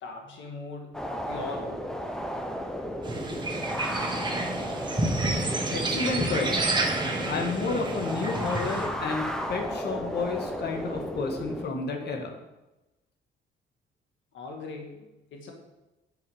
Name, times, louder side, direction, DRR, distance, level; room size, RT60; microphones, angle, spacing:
voice 1, 0.0-1.9 14.3-15.5, left 3 dB, 75° left, 2 dB, 1.7 m, -40 dB
sound 1, 0.9-11.7, equal, 5° left, 0.7 m, -34 dB
sound 2, 3.0-8.9, right 2 dB, 20° right, 1.4 m, -29 dB
voice 2, 5.7-6.9 7.3-12.3, left 4 dB, 55° left, 3 dB, 1.5 m, -31 dB
8.5 x 4.7 x 4.9 m, 1.0 s
cardioid pair, 90°, 20 cm